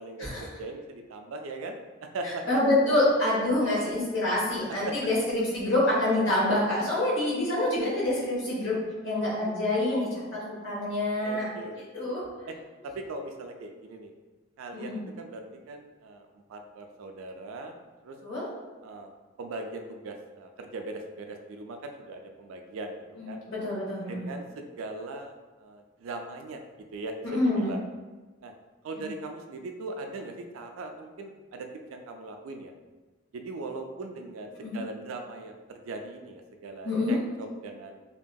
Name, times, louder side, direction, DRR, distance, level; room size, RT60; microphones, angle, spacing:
voice 1, 0.0-2.6 4.8-5.0 11.2-12.2 12.5-12.6 12.8-14.1 14.6-17.8 18.0-18.2 18.8-19.1 19.4-23.4 24.1-26.6 26.9-27.8 28.4-28.5 28.8-32.7 33.3-38.0, right 2 dB, 90° right, 4 dB, 0.4 m, -40 dB
voice 2, 2.2-8.8 9.0-11.5 11.9-12.3 14.7-15.0 18.2-18.5 23.2-24.3 27.2-27.7 34.6-34.8 36.8-37.2, left 1 dB, 65° left, -6 dB, 1.1 m, -26 dB
2.8 x 2.6 x 2.2 m, 1.2 s
head